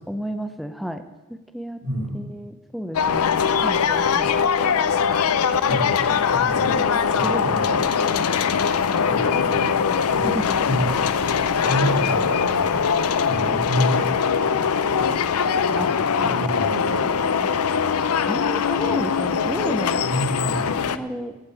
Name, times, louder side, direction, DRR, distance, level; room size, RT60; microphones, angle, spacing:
voice 1, 0.1-1.0 1.3-1.8 2.1-3.3 3.6-4.4 6.6-7.8 10.2-10.7 15.8-16.6 18.2-20.1 20.8-21.4, equal, ahead, 8 dB, 0.6 m, -32 dB
voice 2, 1.8-2.2 5.7-6.0 6.3-6.7 7.1-7.8 9.0-11.0 11.6-13.0 13.3-14.7 15.0-15.1 15.6-15.8 16.2-17.2 20.0-20.7, right 1 dB, 55° right, 2 dB, 2.4 m, -29 dB
sound 1, 2.9-21.0, left 6 dB, 80° left, 0.6 m, -21 dB
16.0 x 5.3 x 8.3 m, 1.1 s
head